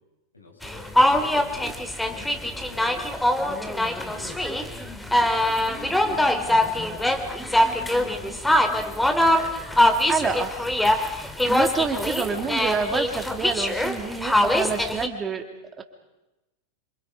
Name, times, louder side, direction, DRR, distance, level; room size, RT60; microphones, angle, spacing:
voice 1, 0.3-0.9 1.3-4.5 5.1-7.3 7.7-8.1, left 2 dB, 80° left, 0 dB, 7.5 m, -48 dB
sound 1, 0.6-15.1, left 1 dB, 5° left, 2.6 m, -23 dB
voice 2, 10.1-10.7 11.5-15.4 15.8-15.9, right 5 dB, 20° right, 5 dB, 3.4 m, -28 dB
29.0 x 26.5 x 5.4 m, 0.98 s
figure-of-eight pair, 90°, 0 cm